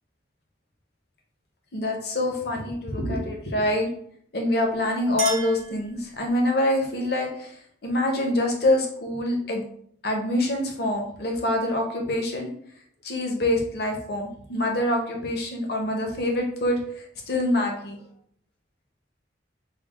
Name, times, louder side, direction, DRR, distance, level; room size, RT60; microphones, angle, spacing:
voice 1, 1.7-3.9 4.3-7.5 7.8-9.6 10.0-12.5 13.0-18.0, left 1 dB, 55° left, 1 dB, 0.7 m, -25 dB
Chink clink, 4.6-6.5, right 4 dB, 40° right, 0.9 m, -35 dB
3.6 x 2.2 x 3.6 m, 0.65 s
head